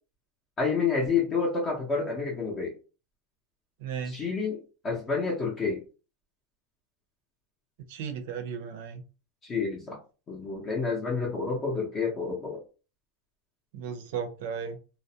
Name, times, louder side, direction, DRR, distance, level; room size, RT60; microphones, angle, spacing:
voice 1, 0.6-2.7 4.1-5.8 9.4-10.0 10.3-12.6, left 5 dB, 20° left, -3 dB, 0.6 m, -29 dB
voice 2, 3.8-4.3 7.9-9.0 13.7-14.8, right 7 dB, 65° right, 6 dB, 0.6 m, -35 dB
2.4 x 2.0 x 2.7 m, 0.34 s
supercardioid pair, 170°, 0 cm